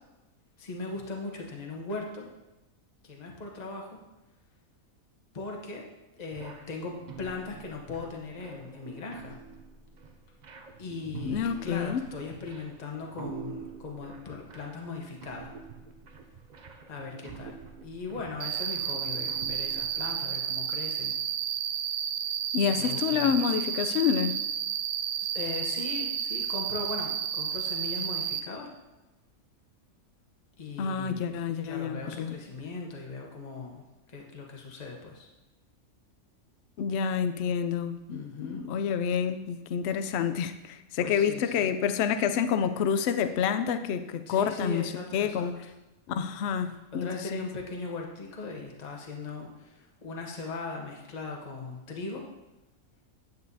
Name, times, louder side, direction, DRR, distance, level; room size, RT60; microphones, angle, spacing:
voice 1, 0.6-2.3 3.0-4.0 5.3-5.8 6.2-9.4 10.8-15.5 16.9-21.2 22.8-23.3 25.2-28.7 30.6-35.3 38.1-38.7 41.0-41.7 44.3-45.5 46.9-52.2, left 3 dB, 30° left, 0 dB, 1.1 m, -39 dB
sound 1, 6.3-20.1, right 5 dB, 50° right, 0.5 m, -46 dB
voice 2, 11.2-12.0 22.5-24.4 30.8-32.4 36.8-45.5 46.1-47.5, left 7 dB, 65° left, 9 dB, 0.7 m, -28 dB
Cricket, 18.4-28.4, right 8 dB, 80° right, 1.0 m, -31 dB
9.4 x 8.0 x 2.7 m, 1.0 s
omnidirectional pair, 1.5 m